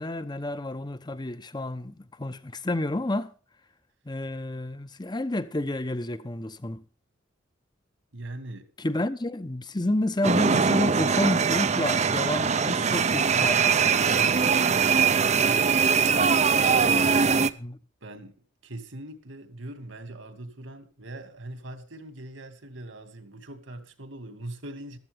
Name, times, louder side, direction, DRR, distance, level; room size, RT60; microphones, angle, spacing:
voice 1, 0.0-3.3 4.0-6.8 8.8-13.9 17.4-17.8, left 1 dB, 20° left, 0.9 m, -30 dB
voice 2, 8.1-8.7 14.1-16.4 18.0-25.0, right 1 dB, 75° right, 2.5 m, -42 dB
sound 1, 10.2-17.5, right 6 dB, 35° right, 0.6 m, -22 dB
14.5 x 13.5 x 3.6 m
head